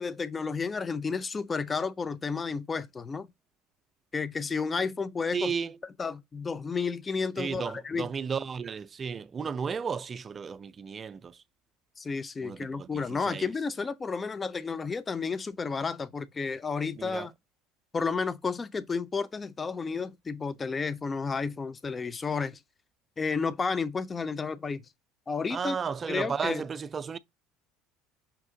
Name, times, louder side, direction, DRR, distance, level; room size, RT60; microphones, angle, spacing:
voice 1, 0.0-3.3 4.1-5.5 6.0-8.1 12.0-17.3 17.9-22.6 23.2-24.8 25.3-25.8 26.1-26.6, left 5 dB, 25° left, 0.5 m, -32 dB
voice 2, 5.3-5.8 7.4-11.4 12.4-13.5 17.0-17.3 25.5-27.2, right 6 dB, 30° right, 0.4 m, -34 dB
5.8 x 2.4 x 3.6 m
figure-of-eight pair, 65°, 0 cm